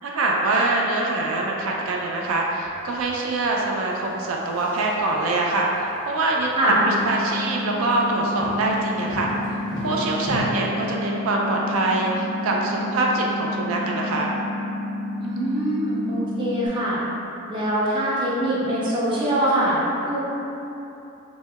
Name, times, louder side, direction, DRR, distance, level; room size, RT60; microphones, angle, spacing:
voice 1, 0.0-9.3 9.8-14.3, right 2 dB, 80° right, -1 dB, 0.3 m, -24 dB
sound 1, 1.4-10.4, left 1 dB, 20° left, 0.9 m, -42 dB
sound 2, 6.7-16.7, left 1 dB, 60° left, 0.5 m, -30 dB
voice 2, 15.2-17.0 17.5-19.8 20.0-20.3, right 1 dB, 25° right, -7 dB, 0.5 m, -23 dB
4.4 x 2.1 x 2.2 m, 2.9 s
head